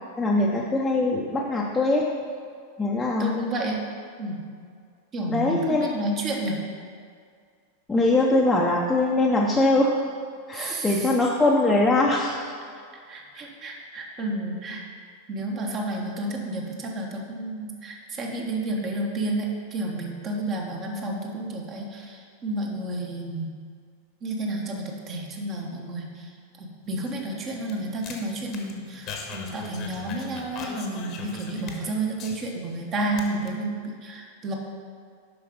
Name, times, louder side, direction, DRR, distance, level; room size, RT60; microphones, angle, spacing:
voice 1, 0.2-2.1 2.8-3.3 5.3-5.8 7.9-10.0 10.5-12.5, left 2 dB, 10° left, -4 dB, 0.8 m, -22 dB
voice 2, 3.2-3.8 4.2-4.4 5.1-6.6 10.5-11.1 12.7-14.9 15.3-23.5 24.2-34.5, right 1 dB, 30° right, 0 dB, 1.3 m, -31 dB
sound 1, 26.8-32.8 33.1-33.5, left 4 dB, 35° left, 1.1 m, -40 dB
7.7 x 5.7 x 5.2 m, 2.1 s
figure-of-eight pair, 90°, 0 cm